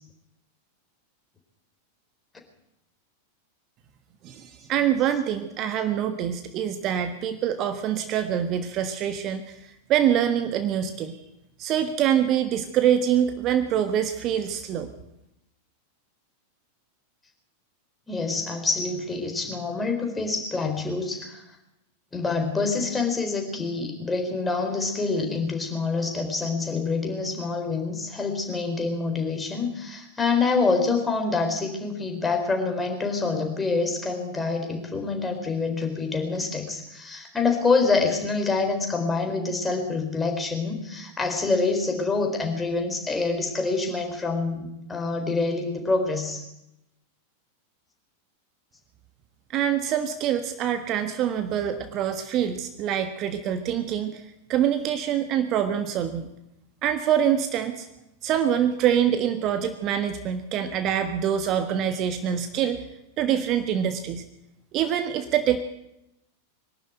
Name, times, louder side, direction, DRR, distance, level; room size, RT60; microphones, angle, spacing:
voice 1, 4.2-11.2 11.6-14.9 49.5-54.2 54.5-56.3 56.8-57.9 58.2-62.8 63.2-64.2 64.7-65.6, right 9 dB, 35° right, 8 dB, 1.4 m, -25 dB
voice 2, 18.1-21.4 22.1-46.4, left 4 dB, 10° left, 3 dB, 4.2 m, -26 dB
22.5 x 12.5 x 9.2 m, 0.88 s
figure-of-eight pair, 90°, 0 cm